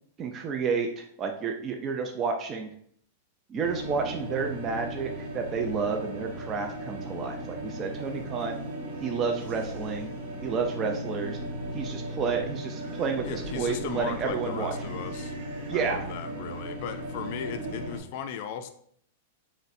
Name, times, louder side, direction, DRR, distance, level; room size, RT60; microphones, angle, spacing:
voice 1, 0.2-2.7 3.5-8.6 9.0-10.1 10.4-11.4 11.7-14.7 15.7-16.0, right 5 dB, 30° right, 3 dB, 0.3 m, -30 dB
sound 1, 3.6-18.0, right 1 dB, 65° right, 0.8 m, -36 dB
voice 2, 13.2-15.3 15.7-18.7, left 8 dB, 55° left, 9 dB, 0.3 m, -37 dB
3.9 x 2.1 x 2.6 m, 0.65 s
hypercardioid pair, 135°, 0 cm